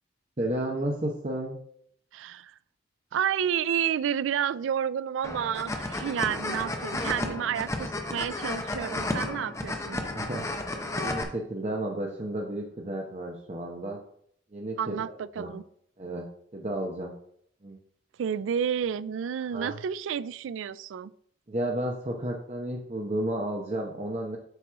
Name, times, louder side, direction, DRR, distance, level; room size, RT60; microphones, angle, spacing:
voice 1, 0.4-1.6 10.1-10.4 10.9-14.0 14.5-15.0 15.4-15.5 16.0-16.3 16.5-17.1 17.6-17.8 19.5-19.7 21.5-24.4, right 1 dB, 35° right, -1 dB, 0.8 m, -32 dB
voice 2, 2.1-2.5 3.1-10.0 14.8-15.6 18.2-21.1, right 8 dB, 85° right, 18 dB, 0.3 m, -30 dB
sound 1, 5.2-11.2, left 2 dB, 15° left, 0.7 m, -32 dB
8.1 x 3.0 x 6.0 m, 0.66 s
head